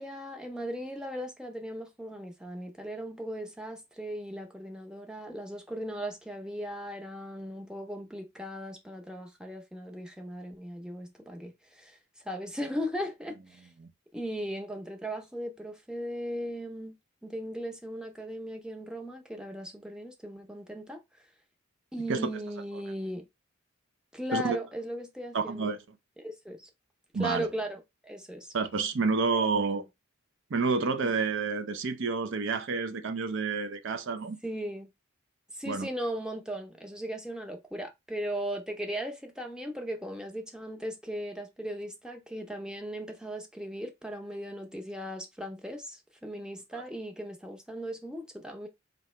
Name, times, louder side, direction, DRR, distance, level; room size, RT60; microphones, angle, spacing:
voice 1, 0.0-12.0 12.2-13.7 14.1-17.0 17.2-21.0 21.9-23.3 24.1-25.7 26.2-26.7 27.2-28.5 29.3-29.8 31.0-31.2 34.4-34.9 35.5-48.7, equal, 5° right, 0.6 m, -37 dB
voice 2, 25.3-25.8 27.1-27.5 28.5-29.8 30.5-34.4 35.7-35.9 46.7-46.8, right 4 dB, 60° right, 0.5 m, -29 dB
4.0 x 2.8 x 3.2 m
head